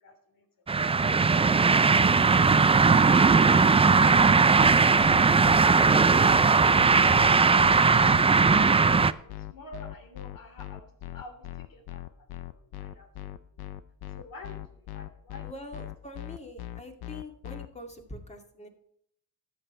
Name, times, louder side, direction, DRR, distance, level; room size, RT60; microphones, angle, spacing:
voice 1, 0.0-0.4 4.9-6.8 7.8-12.3 12.8-13.1 14.1-15.5, left 3 dB, 65° left, 5 dB, 3.3 m, -47 dB
sound 1, 0.7-9.1, right 4 dB, 15° right, 0.4 m, -19 dB
sound 2, 4.1-17.7, left 13 dB, 85° left, 0.8 m, -40 dB
voice 2, 15.4-18.7, left 1 dB, 20° left, 3 dB, 2.2 m, -44 dB
13.5 x 8.0 x 4.4 m, 0.69 s
cardioid pair, 100°, 37 cm